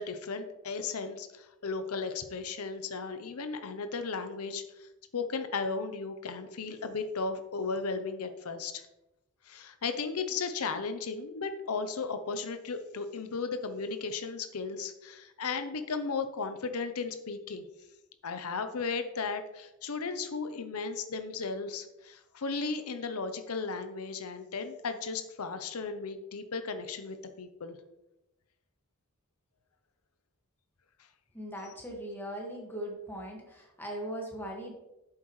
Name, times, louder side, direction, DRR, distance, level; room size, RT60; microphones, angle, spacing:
voice 1, 0.0-8.8 9.5-17.6 18.2-27.8, left 4 dB, 90° left, 9 dB, 0.7 m, -35 dB
voice 2, 31.3-34.7, right 1 dB, 10° left, -1 dB, 1.7 m, -39 dB
8.7 x 7.4 x 3.2 m, 0.94 s
head